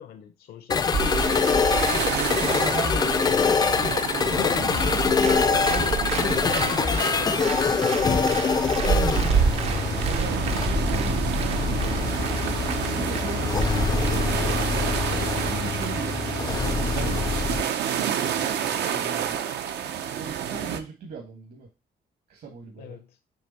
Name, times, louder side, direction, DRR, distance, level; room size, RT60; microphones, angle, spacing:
voice 1, 0.0-2.4 3.3-3.7 4.4-9.4 22.8-23.2, left 9 dB, 70° left, 0.7 m, -39 dB
sound 1, 0.7-17.6, left 5 dB, 25° left, 0.4 m, -24 dB
sound 2, 0.9-20.8, right 8 dB, 85° right, 0.8 m, -28 dB
voice 2, 2.1-4.4 4.7-4.8 10.0-12.2 12.9-14.3 15.1-16.5 16.9-19.4 20.2-21.7 22.3-23.0, right 5 dB, 65° right, 1.5 m, -38 dB
Applause, 4.7-16.4, right 7 dB, 40° right, 0.5 m, -37 dB
6.7 x 3.4 x 4.2 m
cardioid pair, 165°, 17 cm